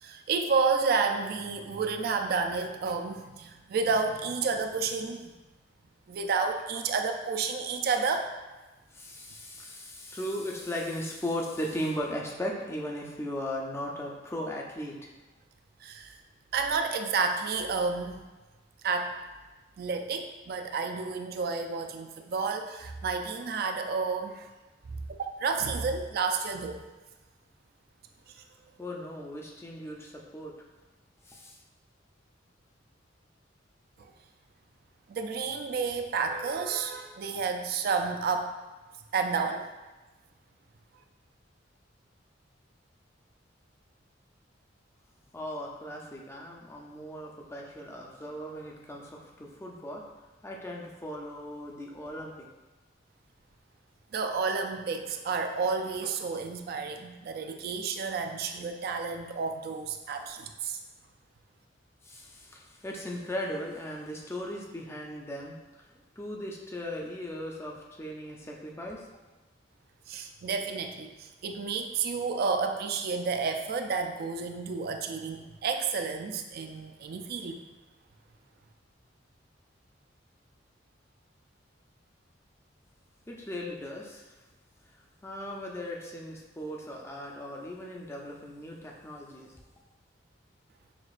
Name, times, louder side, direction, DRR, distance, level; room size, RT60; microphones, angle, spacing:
voice 1, 0.0-5.3 6.1-8.3 15.8-16.1 16.5-18.2 18.8-19.1 19.8-24.5 25.4-26.8 34.0-34.1 35.1-38.5 39.1-39.6 54.1-60.8 70.1-77.6, right 5 dB, 55° right, 5 dB, 0.3 m, -30 dB
voice 2, 8.9-15.1 28.8-30.6 31.2-31.6 45.3-50.0 50.4-52.3 62.0-65.9 66.2-69.1 83.3-84.3 84.9-89.5, equal, 15° left, -1 dB, 0.4 m, -37 dB
5.9 x 2.4 x 2.4 m, 1.2 s
head